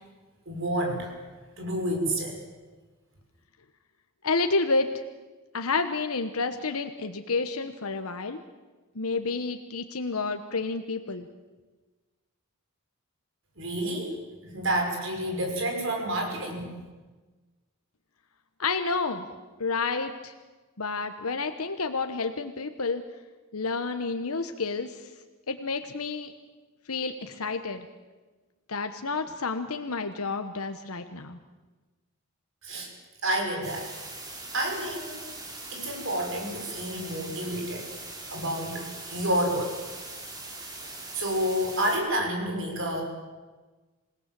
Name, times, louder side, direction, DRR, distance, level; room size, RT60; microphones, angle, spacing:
voice 1, 0.5-1.1 1.6-2.4 13.6-14.2 14.4-16.7 32.6-32.9 33.2-33.9 34.5-35.3 35.7-37.9 38.3-39.8 41.1-43.0, right 1 dB, 60° right, 2 dB, 6.1 m, -29 dB
voice 2, 4.2-4.9 5.5-8.4 8.9-11.3 18.6-19.3 19.6-20.3 20.8-23.0 23.5-25.1 25.5-26.3 26.9-27.8 28.7-31.4, left 4 dB, 90° left, 7 dB, 1.2 m, -30 dB
sound 1, 33.6-42.0, right 2 dB, 20° right, 3.8 m, -41 dB
27.0 x 18.0 x 7.7 m, 1.3 s
head